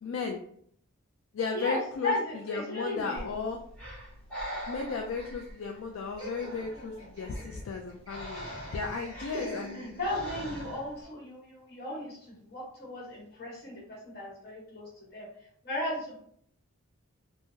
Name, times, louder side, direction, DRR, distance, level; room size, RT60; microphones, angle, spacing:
voice 1, 0.0-0.4 1.3-2.1 2.5-3.6 4.7-9.9, left 4 dB, 65° left, 2 dB, 0.3 m, -35 dB
voice 2, 1.5-3.3 9.4-9.6 10.0-15.3 15.6-16.2, left 1 dB, 45° left, -4 dB, 1.2 m, -36 dB
Breathing, 3.1-11.0, equal, 5° left, 1.4 m, -43 dB
Laughter, 6.2-10.4, equal, 20° right, 1.5 m, -45 dB
3.5 x 2.1 x 2.7 m, 0.64 s
head